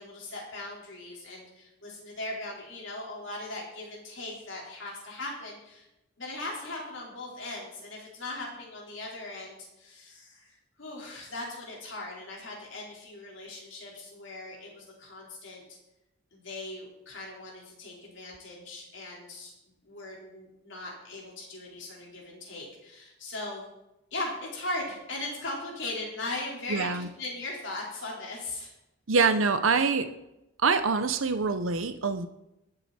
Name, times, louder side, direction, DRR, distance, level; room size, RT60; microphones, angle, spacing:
voice 1, 0.0-5.9 6.2-15.6 16.3-19.5 19.8-23.7 24.1-28.7, left 2 dB, 60° left, -2 dB, 4.4 m, -39 dB
voice 2, 26.7-27.1 29.1-30.1 30.6-32.3, right 4 dB, 75° right, 10 dB, 0.8 m, -25 dB
22.5 x 7.9 x 4.3 m, 0.91 s
head